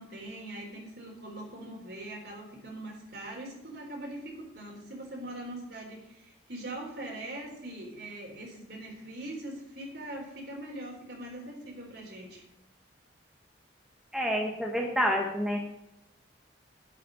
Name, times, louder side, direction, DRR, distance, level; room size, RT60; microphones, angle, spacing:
voice 1, 0.0-12.4, right 1 dB, 60° right, 0 dB, 3.9 m, -42 dB
voice 2, 14.1-15.6, equal, 5° right, 0 dB, 1.4 m, -28 dB
11.0 x 5.9 x 8.7 m, 0.86 s
head